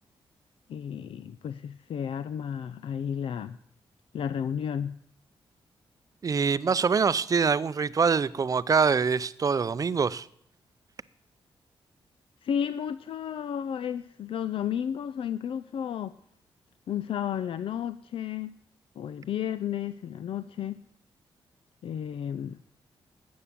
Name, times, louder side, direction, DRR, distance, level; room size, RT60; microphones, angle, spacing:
voice 1, 0.7-3.6 4.1-5.0 12.4-16.2 16.9-18.6 19.0-20.8 21.8-22.6, left 9 dB, 70° left, 0.5 m, -32 dB
voice 2, 6.2-10.3, right 5 dB, 40° right, 0.6 m, -24 dB
12.5 x 8.5 x 8.6 m
cardioid pair, 105°, 10 cm